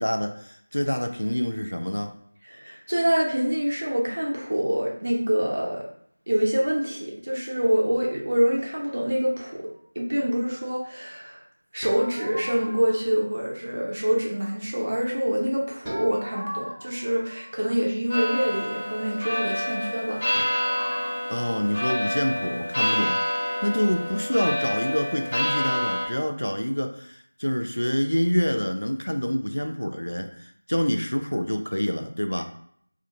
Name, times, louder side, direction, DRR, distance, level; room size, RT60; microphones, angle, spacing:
voice 1, 0.0-2.1 21.3-23.2 23.6-32.4, equal, 80° left, 5 dB, 0.4 m, -26 dB
voice 2, 2.5-5.8 6.3-9.7 10.0-11.4 11.7-20.2, equal, 50° right, -2 dB, 0.6 m, -25 dB
sound 1, 11.8-13.1 15.8-17.8 20.3-21.1, equal, ahead, 0.6 m, -38 dB
sound 2, 18.1-26.1, equal, 40° left, 0.9 m, -28 dB
2.4 x 2.2 x 2.8 m, 0.65 s
figure-of-eight pair, 175°, 0 cm